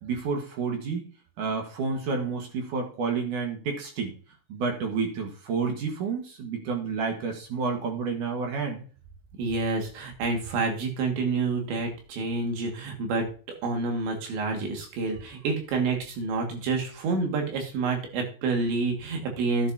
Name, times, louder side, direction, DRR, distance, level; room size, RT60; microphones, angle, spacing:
voice 1, 0.0-1.1 1.4-4.2 4.5-8.8, right 5 dB, 55° right, 3 dB, 2.5 m, -30 dB
voice 2, 9.4-13.3 13.6-19.7, right 3 dB, 75° right, 2 dB, 4.4 m, -28 dB
11.0 x 10.5 x 2.8 m, 0.39 s
omnidirectional pair, 5.2 m